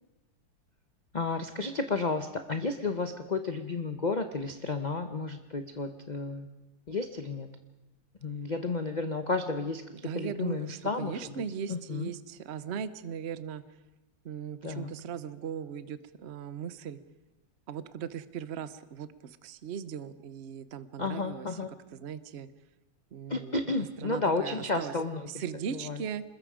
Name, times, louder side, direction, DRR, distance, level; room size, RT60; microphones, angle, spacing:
voice 1, 1.1-6.5 6.9-7.5 8.2-11.3 11.7-12.1 14.6-14.9 21.0-21.7 23.3-25.4 25.7-26.0, left 3 dB, 35° left, 7 dB, 0.7 m, -32 dB
voice 2, 10.0-13.6 14.2-17.0 17.7-21.5 21.9-22.5 23.1-23.6 24.0-24.9 25.3-26.2, right 8 dB, 50° right, 13 dB, 0.8 m, -38 dB
27.0 x 21.0 x 5.0 m, 1.0 s
omnidirectional pair, 2.1 m